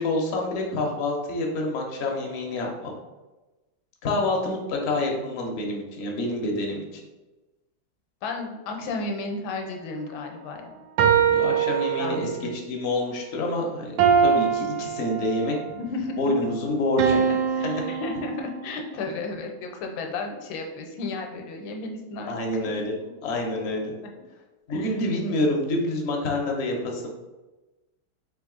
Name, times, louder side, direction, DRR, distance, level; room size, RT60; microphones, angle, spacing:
voice 1, 0.0-2.9 4.0-6.8 11.3-15.6 16.2-17.2 17.6-17.9 22.3-22.9 23.2-23.9 24.7-27.1, left 2 dB, 60° left, 0 dB, 0.6 m, -27 dB
voice 2, 8.2-10.7 12.0-12.6 15.7-16.5 17.1-17.2 17.5-22.3 22.6-22.7 23.0-23.1 24.0-24.1 24.7-24.9, left 3 dB, 80° left, 3 dB, 1.4 m, -33 dB
sound 1, 11.0-12.6 14.0-15.7 17.0-18.9, right 7 dB, 85° right, 1.4 m, -23 dB
4.0 x 2.9 x 3.7 m, 1.1 s
omnidirectional pair, 2.2 m